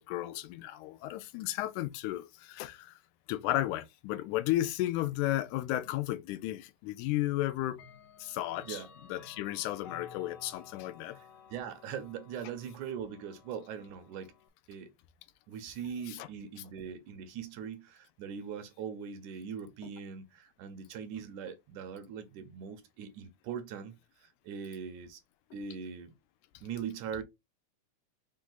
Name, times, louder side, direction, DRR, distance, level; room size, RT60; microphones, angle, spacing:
voice 1, 0.0-3.0 3.3-7.8 8.2-8.8 9.1-11.2 16.1-16.3, left 15 dB, 85° left, 2.0 m, -33 dB
Clock, 6.3-6.4 7.7-14.5, left 7 dB, 70° left, 1.7 m, -54 dB
voice 2, 11.5-14.3 14.7-14.9 15.5-25.2 25.5-26.1 26.6-27.2, right 7 dB, 80° right, 2.1 m, -41 dB
5.3 x 2.4 x 3.8 m
omnidirectional pair, 3.5 m